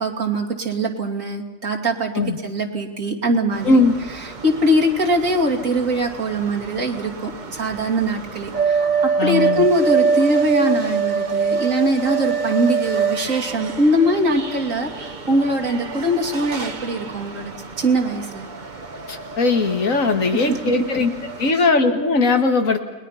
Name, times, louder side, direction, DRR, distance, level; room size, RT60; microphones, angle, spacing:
voice 1, 0.0-2.1 2.4-3.7 4.4-18.5 20.3-20.6 21.5-21.6, right 1 dB, 80° right, 1 dB, 3.1 m, -22 dB
sound 1, 3.5-21.5, right 5 dB, 35° right, 1.3 m, -26 dB
voice 2, 9.2-9.7 19.1-21.1 21.4-22.8, left 3 dB, 85° left, 6 dB, 2.3 m, -19 dB
30.0 x 21.0 x 5.8 m, 1.2 s
omnidirectional pair, 1.4 m